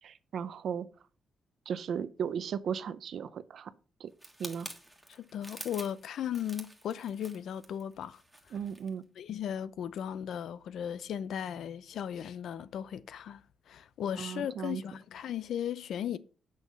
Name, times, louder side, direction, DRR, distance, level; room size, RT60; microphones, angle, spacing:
voice 1, 0.0-0.9 1.7-3.7 4.0-4.1 4.4-4.7 8.5-9.0 14.2-14.8, right 7 dB, 60° right, 0.6 m, -36 dB
sound 1, 4.2-8.9 9.3-9.5, right 1 dB, ahead, 1.5 m, -48 dB
voice 2, 5.1-8.2 8.5-8.6 9.2-13.4 13.7-16.2, left 9 dB, 75° left, 0.6 m, -36 dB
8.2 x 6.5 x 5.3 m
cardioid pair, 135°, 0 cm